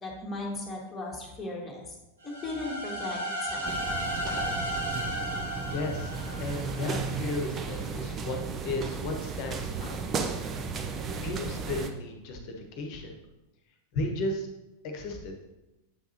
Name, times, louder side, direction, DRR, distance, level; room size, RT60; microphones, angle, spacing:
voice 1, 0.0-2.0 2.2-3.7, left 2 dB, 15° left, -3 dB, 1.7 m, -37 dB
sound 1, 2.2-7.1, equal, 75° right, 1.6 m, -34 dB
sound 2, 3.6-11.9, right 4 dB, 25° right, 0.6 m, -34 dB
voice 2, 5.7-6.1 6.4-8.4 8.6-10.0 11.2-13.1 13.9-14.5 14.9-15.4, left 2 dB, 45° left, 3 dB, 1.1 m, -34 dB
8.1 x 5.8 x 2.8 m, 0.99 s
figure-of-eight pair, 90°, 0 cm